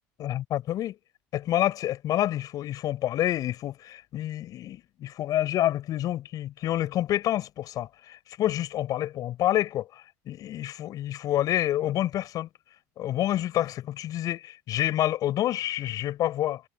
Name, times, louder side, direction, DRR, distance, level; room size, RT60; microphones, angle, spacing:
voice 1, 0.2-1.0 1.3-12.5 13.0-16.6, left 13 dB, 55° left, 7.0 m, -28 dB
supercardioid pair, 85°, 7 cm